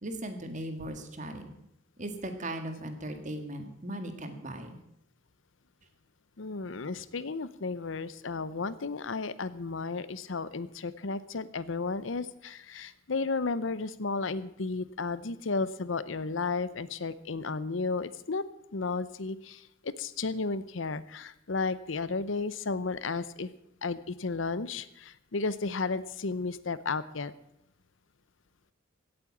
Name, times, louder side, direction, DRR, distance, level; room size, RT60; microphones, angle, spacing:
voice 1, 0.0-1.5 2.0-4.8, right 1 dB, 40° right, 7 dB, 1.9 m, -38 dB
voice 2, 6.4-18.4 18.7-23.5 23.8-27.3, left 4 dB, 80° left, 16 dB, 0.8 m, -33 dB
16.5 x 8.8 x 7.3 m, 0.78 s
head